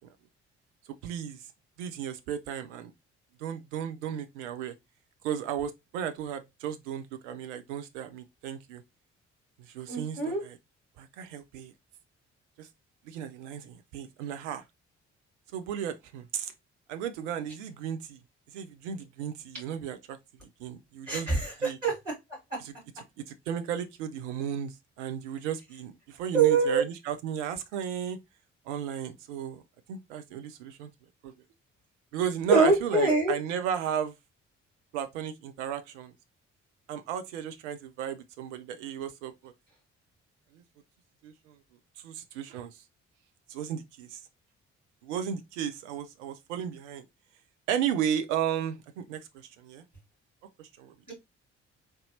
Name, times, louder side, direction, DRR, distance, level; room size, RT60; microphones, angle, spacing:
voice 1, 1.0-1.4 1.8-2.9 3.4-4.7 5.2-8.8 9.6-10.6 11.0-11.7 12.6-12.7 13.1-14.6 15.5-16.5 16.9-18.2 18.5-20.2 20.6-21.3 21.6-21.8 22.6-22.7 23.3-28.2 28.7-29.6 29.9-30.9 31.2-31.3 32.1-34.1 34.9-36.1 36.9-39.5 41.2-41.5 42.0-42.7 43.5-44.2 45.0-47.0 47.7-49.2 49.6-49.8 50.6-50.9, right 9 dB, 70° right, 0.6 m, -34 dB
voice 2, 9.9-10.4 21.1-22.1 26.3-26.8 32.5-33.3 51.1-51.2, right 4 dB, 90° right, 1.3 m, -24 dB
4.0 x 3.3 x 2.7 m
figure-of-eight pair, 40°, 37 cm